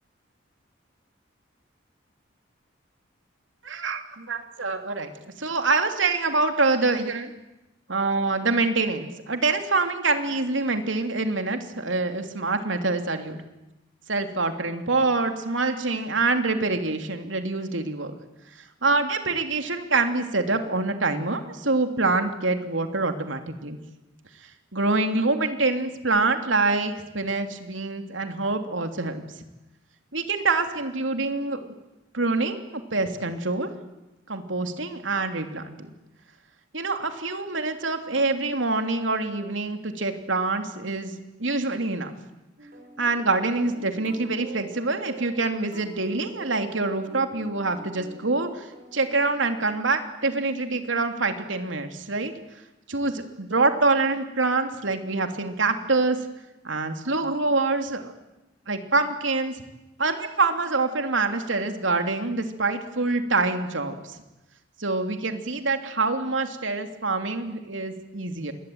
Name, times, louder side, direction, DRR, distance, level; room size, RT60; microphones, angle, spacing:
voice 1, 3.6-7.3 7.9-13.4 14.1-18.1 18.8-23.8 24.7-29.2 30.1-31.7 32.1-32.6 32.9-33.7 34.3-35.9 36.7-42.1 43.0-48.7 48.9-52.3 52.9-56.2 56.6-58.1 58.7-59.5 60.0-64.2 64.8-68.5, right 3 dB, 85° right, 6 dB, 3.1 m, -25 dB
sound 1, 42.6-50.0, right 2 dB, 50° right, 7.3 m, -45 dB
27.0 x 21.5 x 9.5 m, 0.96 s
head